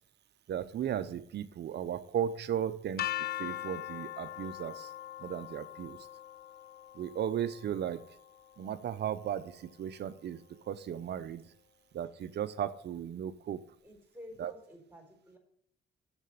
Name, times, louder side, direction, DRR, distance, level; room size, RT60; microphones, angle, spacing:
voice 1, 0.5-3.1 3.4-4.9 5.2-6.0 7.0-8.0 8.6-10.4 10.7-11.4 11.9-13.6 14.4-14.5, right 9 dB, 60° right, 13 dB, 0.7 m, -35 dB
sound 1, 3.0-8.9, left 13 dB, 50° left, 0.6 m, -41 dB
voice 2, 13.8-15.4, left 1 dB, 5° right, -1 dB, 4.0 m, -51 dB
7.3 x 6.8 x 6.5 m, 0.69 s
cardioid pair, 90°, 20 cm